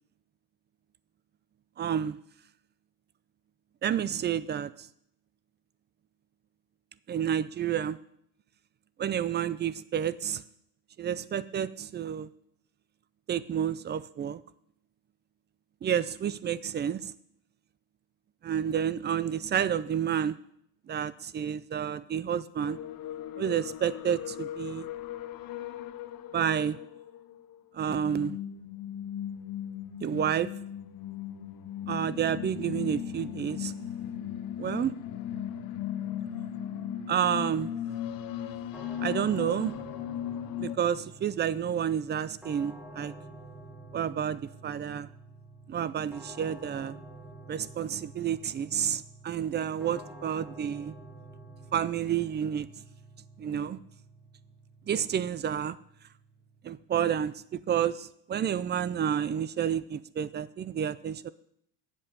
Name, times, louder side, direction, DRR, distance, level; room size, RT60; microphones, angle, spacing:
voice 1, 1.8-2.2 3.8-4.7 7.1-8.0 9.0-10.4 11.0-12.3 13.3-14.4 15.8-17.1 18.4-20.3 20.9-22.8 23.4-24.9 26.3-26.8 27.7-28.4 30.0-30.5 31.9-33.7 34.6-34.9 37.1-37.7 39.0-39.7 40.6-43.1 43.9-45.1 45.7-47.0 47.5-51.0 51.7-52.7 53.4-53.8 54.9-55.8 56.6-61.3, right 9 dB, 25° right, 17 dB, 0.4 m, -30 dB
sound 1, 22.6-40.8, left 10 dB, 60° left, 0.8 m, -37 dB
sound 2, 38.7-57.6, right 2 dB, ahead, 1.4 m, -49 dB
8.2 x 7.6 x 6.7 m, 0.70 s
cardioid pair, 120°, 40 cm